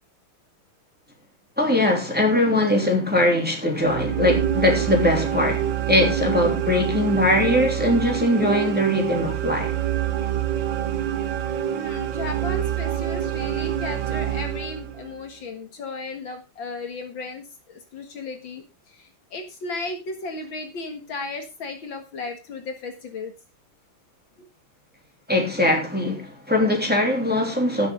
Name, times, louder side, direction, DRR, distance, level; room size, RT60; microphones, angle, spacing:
voice 1, 1.6-9.7 25.3-27.9, left 1 dB, 5° right, 3.0 m, -21 dB
sound 1, 3.8-15.1, right 10 dB, 65° right, 1.5 m, -26 dB
voice 2, 11.7-23.3, left 3 dB, 65° left, 2.3 m, -35 dB
17.0 x 6.8 x 3.7 m
omnidirectional pair, 2.4 m